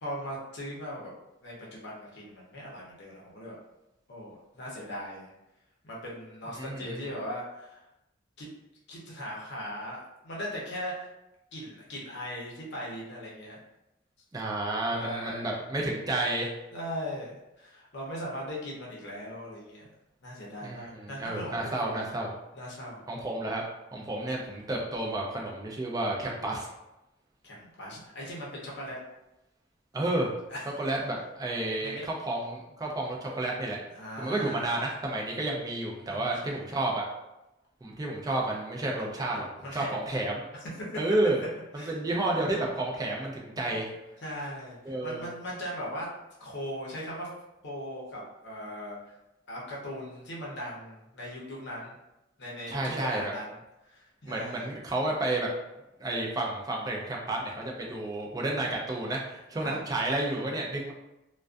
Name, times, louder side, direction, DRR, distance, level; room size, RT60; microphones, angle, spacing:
voice 1, 0.0-1.1 1.4-3.5 4.1-5.3 5.8-7.8 8.4-8.5 8.9-11.1 11.5-13.6 14.9-15.6 16.7-19.9 20.2-22.1 22.5-23.0 27.4-29.0 30.5-30.6 31.8-32.0 33.9-34.7 36.1-36.6 39.3-40.0 41.8-42.0 44.2-46.1 46.4-47.3 47.6-49.1 49.5-52.0 52.4-53.5 53.8-54.7 59.6-59.8, equal, 60° left, -4 dB, 0.7 m, -39 dB
voice 2, 6.6-7.0 14.3-16.5 20.6-22.3 23.1-23.6 23.9-26.7 29.9-30.3 30.8-33.8 34.2-37.0 37.8-40.4 41.0-41.4 41.7-43.9 44.8-45.3 52.7-53.3 54.3-55.5 56.0-60.9, right 2 dB, 20° right, -1 dB, 0.3 m, -31 dB
2.3 x 2.2 x 2.4 m, 0.94 s
head